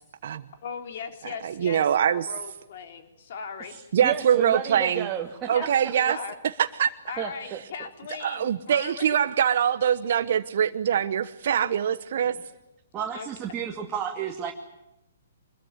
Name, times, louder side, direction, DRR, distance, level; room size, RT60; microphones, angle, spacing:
voice 1, 0.6-3.8 5.5-6.4 7.1-9.2 11.6-11.7 13.1-13.3, left 6 dB, 55° left, 6 dB, 4.0 m, -38 dB
voice 2, 1.4-2.3 3.9-5.1 5.5-6.2 6.6-6.9 8.2-12.4, right 9 dB, 55° right, 10 dB, 1.1 m, -23 dB
voice 3, 4.0-5.7 7.2-7.6 12.9-14.5, right 9 dB, 20° right, 0 dB, 2.5 m, -31 dB
25.0 x 22.0 x 9.3 m, 0.89 s
figure-of-eight pair, 130°, 0 cm